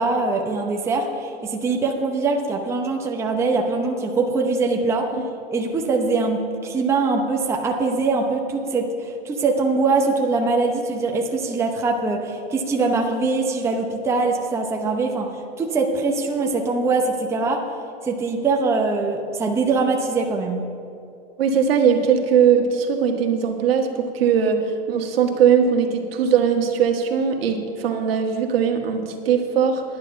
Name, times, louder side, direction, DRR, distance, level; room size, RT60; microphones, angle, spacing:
voice 1, 0.0-5.1 5.5-17.6 18.0-20.6, right 3 dB, 10° right, 1 dB, 0.8 m, -22 dB
voice 2, 21.4-29.8, right 7 dB, 75° right, 3 dB, 1.6 m, -20 dB
10.0 x 9.7 x 5.8 m, 2.6 s
supercardioid pair, 150°, 30 cm